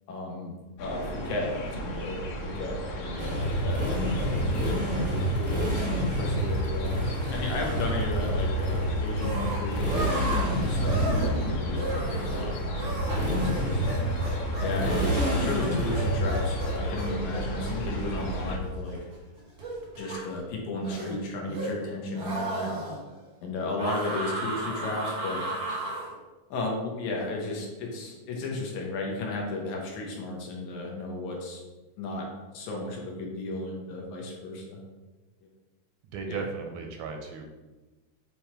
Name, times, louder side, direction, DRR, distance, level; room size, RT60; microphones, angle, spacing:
voice 1, 0.1-5.6 6.2-7.0 7.3-9.8 10.5-12.9 13.2-14.0 14.6-19.0 20.0-22.7 23.4-25.5 26.5-31.6 32.0-34.8 36.3-36.4, left 2 dB, 75° left, -1 dB, 2.3 m, -34 dB
sound 1, 0.8-18.6, equal, 90° left, 2.8 m, -35 dB
Motorcycle, 3.2-19.0, equal, 10° left, 0.7 m, -29 dB
sound 2, 9.2-19.1 19.6-20.3 20.8-21.9 22.1-23.0 23.8-26.1, right 1 dB, 50° right, 1.2 m, -35 dB
voice 2, 36.1-37.4, right 5 dB, 80° right, 3 dB, 1.9 m, -36 dB
7.1 x 3.2 x 4.3 m, 1.2 s
omnidirectional pair, 3.6 m